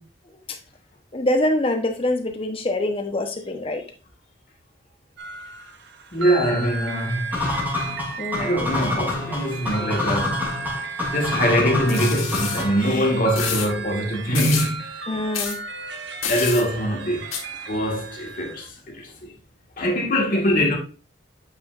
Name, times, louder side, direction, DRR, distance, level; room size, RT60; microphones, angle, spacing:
voice 1, 1.1-3.8 8.2-8.5 15.1-15.6, left 1 dB, 30° left, 0.9 m, -24 dB
sound 1, 5.2-18.7, right 4 dB, 60° right, 0.9 m, -35 dB
voice 2, 6.1-7.3 8.4-10.5 10.7-10.9 11.1-14.8 16.3-17.2 17.7-19.3 19.8-20.8, equal, 45° left, 1.7 m, -23 dB
sound 2, 7.3-12.9, left 2 dB, 10° right, 2.5 m, -27 dB
sound 3, 11.9-12.6 13.3-13.7 14.3-14.7 15.3-15.5 16.2-16.6 17.3-17.4, left 7 dB, 90° left, 1.6 m, -28 dB
8.4 x 5.0 x 2.5 m
head